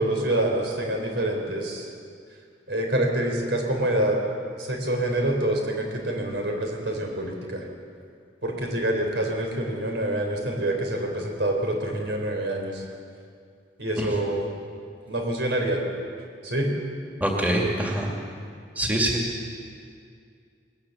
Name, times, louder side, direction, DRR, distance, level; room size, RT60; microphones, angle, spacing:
voice 1, 0.0-1.9 2.7-4.2 4.6-7.6 8.4-12.8 13.8-14.5 15.1-15.8 16.4-16.7, right 1 dB, 90° right, 2 dB, 4.1 m, -26 dB
voice 2, 17.2-18.1 18.8-19.2, right 1 dB, 10° right, -1 dB, 2.3 m, -24 dB
21.0 x 19.0 x 7.2 m, 2.3 s
head